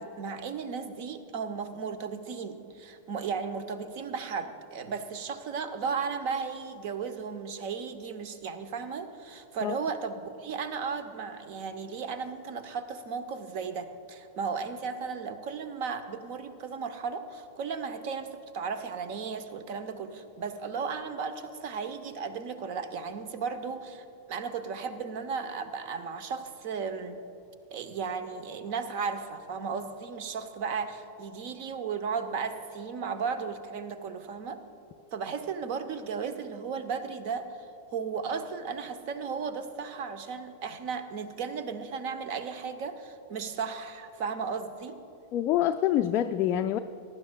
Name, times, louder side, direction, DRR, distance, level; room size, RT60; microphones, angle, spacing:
voice 1, 0.0-27.2 27.7-34.6 35.1-37.4 37.9-45.0, right 5 dB, 45° right, 10 dB, 0.8 m, -35 dB
voice 2, 45.3-46.8, left 12 dB, 35° left, 6 dB, 0.3 m, -26 dB
22.0 x 11.0 x 2.3 m, 2.8 s
figure-of-eight pair, 90°, 0 cm